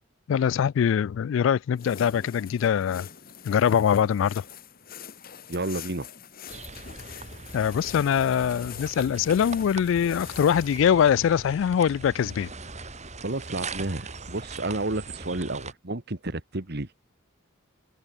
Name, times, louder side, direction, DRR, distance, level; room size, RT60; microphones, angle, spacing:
voice 1, 0.3-3.1 3.4-4.4 7.5-12.5, left 8 dB, 70° left, 0.3 m, -23 dB
sound 1, 1.7-10.8, left 7 dB, 50° left, 1.4 m, -44 dB
voice 2, 5.5-6.1 13.2-16.9, right 2 dB, 55° right, 1.8 m, -31 dB
sound 2, 6.5-15.7, right 4 dB, 35° right, 5.9 m, -41 dB
head